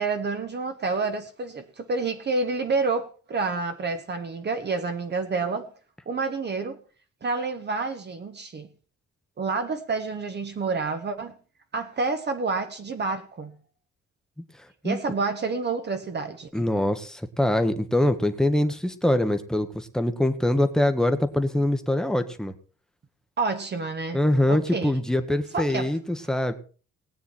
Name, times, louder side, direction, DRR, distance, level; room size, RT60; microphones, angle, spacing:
voice 1, 0.0-5.7 6.1-6.8 7.2-8.7 9.4-11.3 11.7-13.6 14.8-16.7 23.4-24.2 24.5-24.9 25.5-25.9, right 4 dB, 35° right, 1.2 m, -28 dB
voice 2, 16.5-22.5 24.1-26.5, left 1 dB, ahead, 1.2 m, -24 dB
19.0 x 9.2 x 4.3 m
wide cardioid pair, 170°, 29 cm